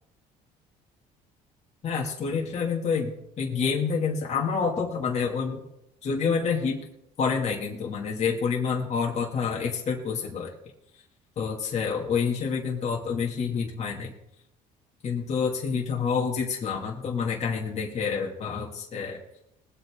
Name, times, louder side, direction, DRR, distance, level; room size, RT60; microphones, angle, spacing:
voice 1, 1.8-5.6 6.0-6.8 7.2-10.5 11.4-14.1 15.0-19.2, left 5 dB, 45° left, -2 dB, 2.6 m, -28 dB
22.0 x 8.2 x 3.8 m, 0.81 s
cardioid pair, 120°, 16 cm